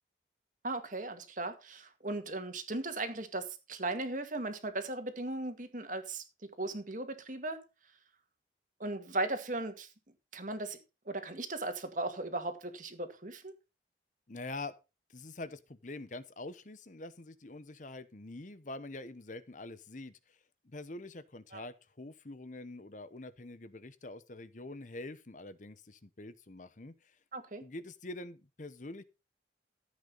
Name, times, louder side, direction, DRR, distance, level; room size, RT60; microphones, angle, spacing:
voice 1, 0.6-6.2 6.6-7.6 8.8-9.9 10.3-10.8 11.1-13.5 21.5-21.7 27.3-27.6, right 2 dB, 45° right, 2.1 m, -37 dB
voice 2, 14.3-14.7 15.1-20.4 20.6-27.2 27.6-29.0, left 2 dB, 45° left, 0.9 m, -45 dB
14.5 x 8.3 x 4.0 m
head